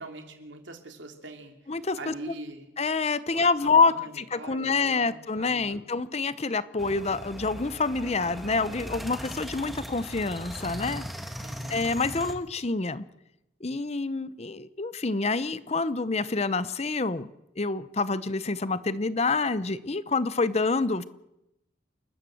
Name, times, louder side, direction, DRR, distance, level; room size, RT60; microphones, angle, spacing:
voice 1, 0.0-2.7 3.3-5.9 11.4-11.9, right 2 dB, 70° right, 5 dB, 3.1 m, -43 dB
voice 2, 1.7-2.1 2.8-11.0 11.7-13.0 13.6-17.3 17.6-21.1, left 4 dB, 35° left, 16 dB, 0.7 m, -27 dB
sound 1, 6.8-12.3, equal, ahead, 1.7 m, -39 dB
29.0 x 13.0 x 7.8 m, 0.87 s
head